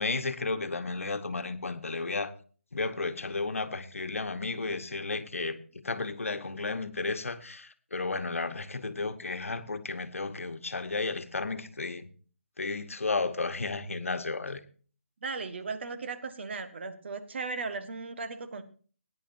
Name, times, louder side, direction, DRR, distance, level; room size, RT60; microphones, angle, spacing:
voice 1, 0.0-2.3 2.7-12.1 12.6-14.6, left 3 dB, 80° left, 1.2 m, -33 dB
voice 2, 15.2-18.6, right 4 dB, 55° right, 1.4 m, -36 dB
19.0 x 9.8 x 2.7 m
figure-of-eight pair, 155°, 7 cm